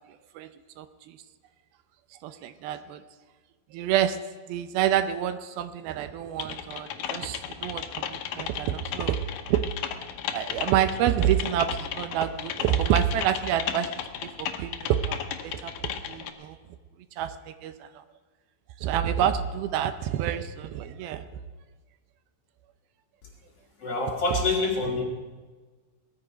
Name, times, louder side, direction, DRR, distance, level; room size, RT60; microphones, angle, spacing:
voice 1, 0.8-1.2 2.2-3.0 3.7-4.2 4.5-9.2 9.5-9.6 10.3-13.9 14.2-15.2 15.4-15.7 16.1-16.6 17.2-18.0 18.8-21.2, right 10 dB, 80° right, 10 dB, 2.5 m, -27 dB
Typing, 6.4-16.3, left 9 dB, 70° left, 2.4 m, -34 dB
voice 2, 23.8-25.0, left 3 dB, 45° left, -1 dB, 2.6 m, -26 dB
20.5 x 13.5 x 5.0 m, 1.3 s
omnidirectional pair, 4.4 m